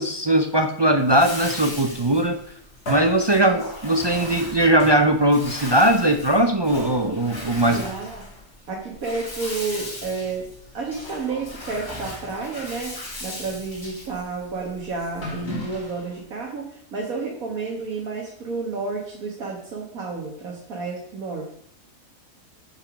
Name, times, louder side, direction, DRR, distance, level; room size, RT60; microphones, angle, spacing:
voice 1, 0.0-2.4 2.9-7.8, right 1 dB, 40° right, 5 dB, 0.3 m, -19 dB
Bathtub (filling or washing), 1.0-16.1, left 1 dB, 45° left, 2.4 m, -36 dB
voice 2, 7.7-8.3 8.7-10.5 10.7-21.5, right 4 dB, 85° right, -2 dB, 1.9 m, -31 dB
7.0 x 5.6 x 6.0 m, 0.67 s
omnidirectional pair, 1.4 m